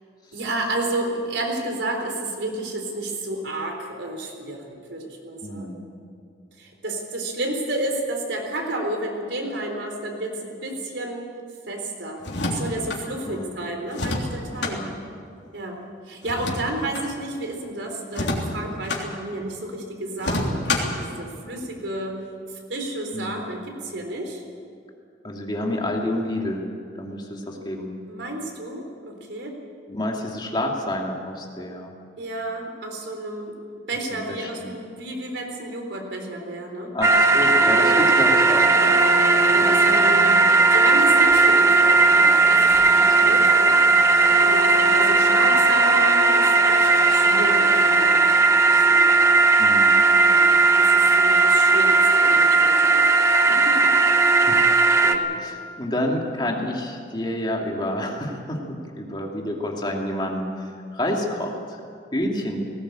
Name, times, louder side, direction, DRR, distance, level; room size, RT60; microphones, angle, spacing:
voice 1, 0.3-5.8 6.6-11.3 11.7-14.8 15.5-15.8 16.1-22.2 22.7-24.4 28.1-29.6 32.2-33.6 33.9-36.9 37.8-38.0 39.2-40.4 40.7-49.3 50.2-53.1 53.5-53.8 55.0-55.4, right 1 dB, 85° right, 2 dB, 4.0 m, -31 dB
voice 2, 5.4-5.8 13.3-13.5 14.6-14.9 23.1-23.4 25.2-26.6 26.9-27.9 29.9-31.9 34.3-34.7 36.9-39.1 39.6-40.1 42.9-43.4 49.6-49.9 54.4-54.7 55.4-61.8 62.1-62.6, left 1 dB, 25° left, 0 dB, 2.6 m, -29 dB
sound 1, 12.2-13.0 13.9-14.8 16.2-17.1 18.1-19.1 20.2-21.0, left 2 dB, 75° left, 3.3 m, -27 dB
sound 2, 37.0-55.2, right 3 dB, 15° right, 0.9 m, -17 dB
19.0 x 18.0 x 8.9 m, 2.3 s
head